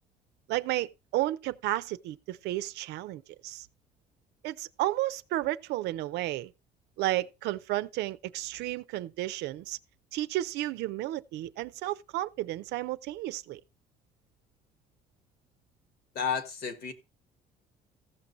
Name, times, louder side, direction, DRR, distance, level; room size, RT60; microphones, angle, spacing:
voice 1, 0.5-3.7 4.4-6.5 7.0-9.8 10.1-13.6, right 16 dB, 80° right, 0.6 m, -32 dB
voice 2, 16.1-16.9, left 6 dB, 70° left, 1.7 m, -31 dB
14.5 x 6.1 x 4.0 m
cardioid pair, 110°, 17 cm